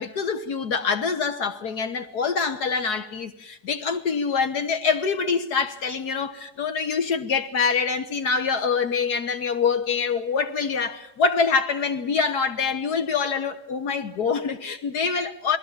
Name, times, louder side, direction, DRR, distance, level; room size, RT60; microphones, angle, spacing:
voice 1, 0.0-15.6, left 5 dB, 70° left, 1.7 m, -25 dB
28.0 x 19.5 x 7.3 m
omnidirectional pair, 1.8 m